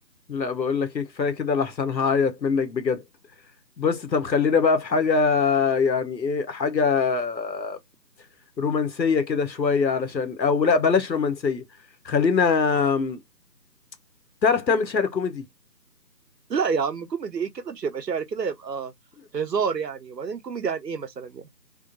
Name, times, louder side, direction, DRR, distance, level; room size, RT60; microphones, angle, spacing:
voice 1, 0.3-3.0 3.8-7.8 8.6-11.6 12.0-13.2 14.4-15.4, left 5 dB, 90° left, 1.2 m, -23 dB
voice 2, 16.5-18.9 19.3-21.4, right 6 dB, 75° right, 0.8 m, -28 dB
3.6 x 2.3 x 2.5 m
figure-of-eight pair, 180°, 50 cm